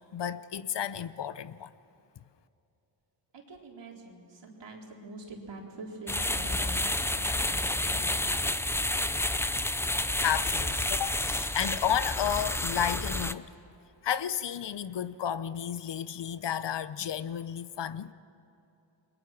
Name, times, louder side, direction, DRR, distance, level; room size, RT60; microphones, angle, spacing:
voice 1, 0.1-1.7 10.2-13.5 14.0-18.1, left 9 dB, 65° left, 0.8 m, -32 dB
voice 2, 3.3-8.6, right 2 dB, 70° right, 4.3 m, -45 dB
sound 1, 6.1-13.3, left 1 dB, 5° left, 0.5 m, -30 dB
29.5 x 22.5 x 6.1 m
wide cardioid pair, 120°, 45 cm